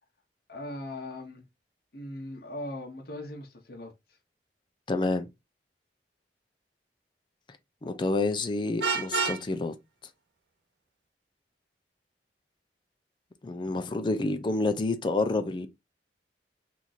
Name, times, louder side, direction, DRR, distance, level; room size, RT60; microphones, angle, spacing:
voice 1, 0.5-1.4 1.9-4.2, left 1 dB, 60° left, 1.0 m, -39 dB
voice 2, 4.9-5.3 7.8-9.7 13.4-15.7, left 2 dB, 25° left, 0.4 m, -28 dB
Vehicle horn car horn honking, 8.8-9.4, right 5 dB, 75° right, 0.6 m, -28 dB
3.0 x 2.5 x 3.9 m
head